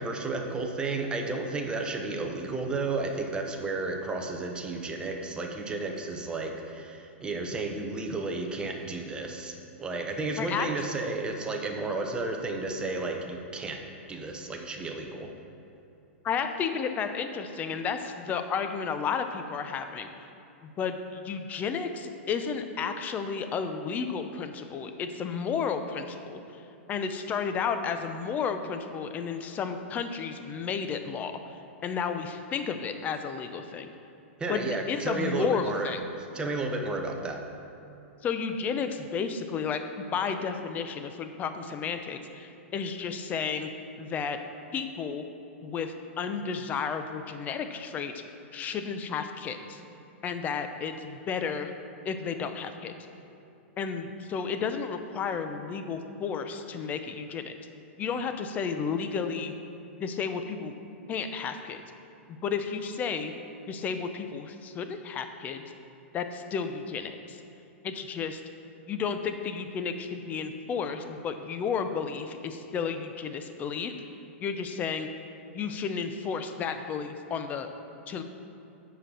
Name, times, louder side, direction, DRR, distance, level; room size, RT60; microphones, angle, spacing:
voice 1, 0.0-9.5 9.8-15.3 34.4-35.9 36.3-37.4, right 3 dB, 15° right, 2 dB, 0.8 m, -32 dB
voice 2, 16.2-20.1 20.6-26.4 26.9-31.3 31.8-33.9 34.5-36.0 38.2-43.7 44.0-44.4 44.7-45.2 45.6-48.1 48.5-49.8 50.2-51.7 52.0-52.9 53.8-57.5 58.0-59.5 60.0-60.7 61.1-61.8 62.3-63.3 63.7-65.6 66.1-67.4 67.8-68.4 68.9-73.9 74.4-75.1 75.5-77.7 78.1-78.2, left 6 dB, 25° left, 8 dB, 0.5 m, -32 dB
7.5 x 5.0 x 6.2 m, 2.9 s
hypercardioid pair, 140°, 7 cm